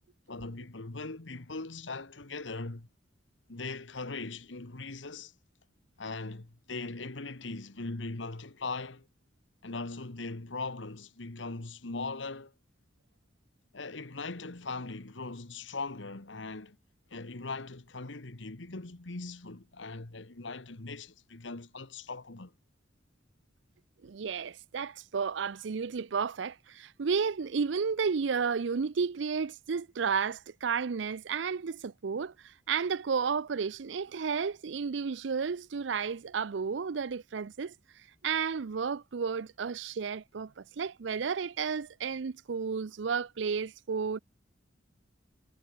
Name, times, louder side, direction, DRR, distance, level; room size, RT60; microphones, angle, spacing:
voice 1, 0.3-2.9 3.5-5.3 6.0-9.1 9.6-12.5 13.7-16.8 17.1-22.5, left 3 dB, 75° left, 1.5 m, -40 dB
voice 2, 24.0-37.7 38.2-44.2, right 6 dB, 70° right, 0.5 m, -32 dB
head